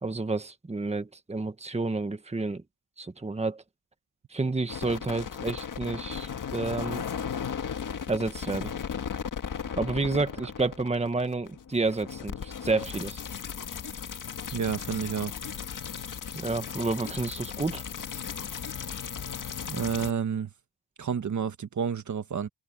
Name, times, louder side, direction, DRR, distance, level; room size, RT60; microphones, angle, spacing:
voice 1, 0.0-2.6 3.0-3.6 4.3-7.0 8.1-8.7 9.8-13.2 16.3-17.8, right 3 dB, 15° right, 1.5 m, -30 dB
sound 1, 4.7-20.1, left 7 dB, 50° left, 1.8 m, -36 dB
voice 2, 14.5-15.3 19.7-20.5 21.0-22.5, right 7 dB, 45° right, 1.4 m, -30 dB
open air
cardioid pair, 105°, 39 cm